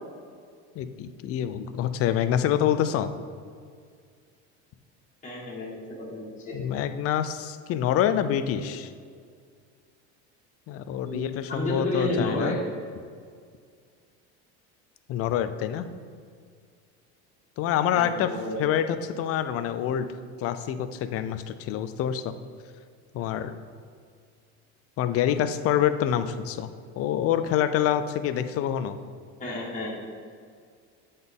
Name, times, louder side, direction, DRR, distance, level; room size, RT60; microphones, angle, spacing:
voice 1, 0.8-3.1 6.5-8.9 10.7-12.6 15.1-15.9 17.6-18.3 18.6-20.1 20.4-22.3 23.1-23.5 25.0-26.7 27.0-29.0, left 10 dB, 45° left, 11 dB, 0.4 m, -26 dB
voice 2, 5.2-6.5 11.0-12.6 17.9-18.6 29.4-30.1, left 1 dB, 20° left, -7 dB, 1.5 m, -31 dB
7.7 x 4.0 x 3.6 m, 2.1 s
supercardioid pair, 110°, 33 cm